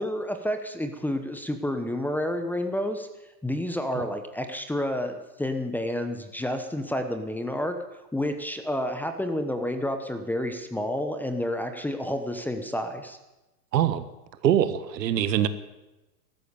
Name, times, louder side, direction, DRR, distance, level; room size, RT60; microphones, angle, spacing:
voice 1, 0.0-3.1 3.4-7.8 8.1-13.2, left 1 dB, 5° left, 7 dB, 0.9 m, -30 dB
voice 2, 13.7-14.1 14.4-15.5, right 10 dB, 80° right, 12 dB, 1.5 m, -23 dB
14.5 x 13.0 x 6.8 m, 1.0 s
hypercardioid pair, 130°, 50 cm